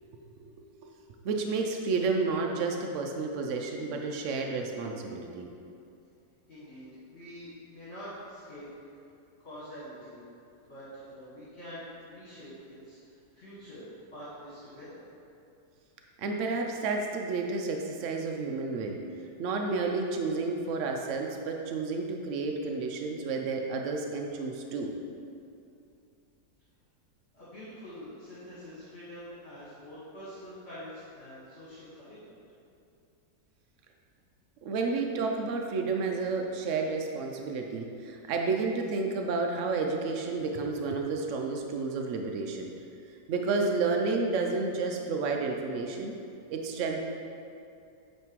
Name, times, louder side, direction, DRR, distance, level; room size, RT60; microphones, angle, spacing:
voice 1, 0.4-0.9 1.2-5.5 16.2-19.0 19.4-24.9 34.6-42.7 43.3-46.1 46.5-47.0, right 4 dB, 90° right, 2 dB, 0.6 m, -31 dB
voice 2, 6.5-8.7 9.4-10.3 10.7-15.0 27.3-32.4, equal, 40° left, -11 dB, 1.8 m, -46 dB
8.8 x 3.3 x 4.6 m, 2.6 s
omnidirectional pair, 1.9 m